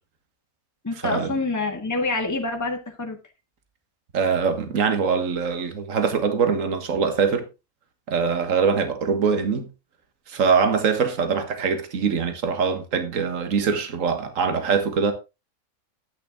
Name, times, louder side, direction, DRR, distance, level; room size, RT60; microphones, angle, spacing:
voice 1, 0.8-3.2, left 3 dB, 10° left, 1.6 m, -26 dB
voice 2, 4.1-7.5 8.1-9.7 10.3-15.1, right 6 dB, 60° right, 1.8 m, -23 dB
10.0 x 8.9 x 3.6 m
omnidirectional pair, 1.6 m